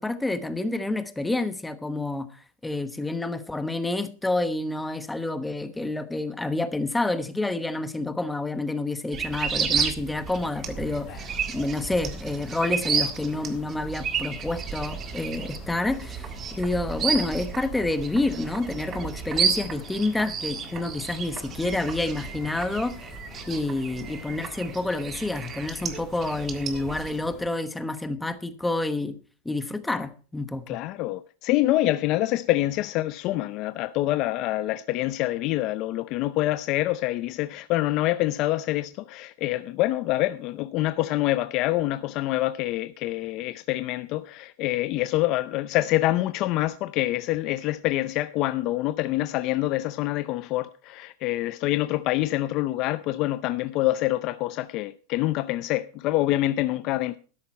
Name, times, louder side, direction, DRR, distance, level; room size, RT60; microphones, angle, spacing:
voice 1, 0.0-11.2 11.5-16.3 16.6-22.9 23.5-29.2 29.4-30.8, left 2 dB, 5° left, 1.0 m, -28 dB
sound 1, 9.1-27.1, right 7 dB, 25° right, 1.7 m, -32 dB
sound 2, 10.3-27.5, left 4 dB, 20° left, 4.7 m, -46 dB
voice 2, 30.7-57.2, left 16 dB, 40° left, 0.6 m, -26 dB
13.0 x 10.5 x 4.3 m
supercardioid pair, 155°, 0 cm